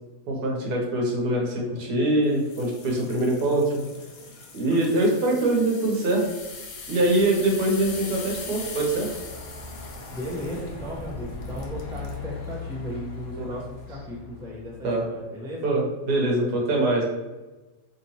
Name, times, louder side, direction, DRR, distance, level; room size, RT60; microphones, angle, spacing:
voice 1, 0.3-3.8 4.5-6.3 6.9-9.1 13.4-13.5 14.8-15.1 15.6-17.0, right 1 dB, 85° right, 0 dB, 1.4 m, -23 dB
sound 1, 2.3-12.2 12.7-13.0 13.5-13.6, left 4 dB, 85° left, 1.2 m, -41 dB
Truck, 5.9-15.2, left 4 dB, 65° left, 1.3 m, -40 dB
voice 2, 10.1-15.8, equal, 5° right, -5 dB, 0.5 m, -36 dB
3.3 x 2.8 x 2.8 m, 1.1 s
omnidirectional pair, 1.7 m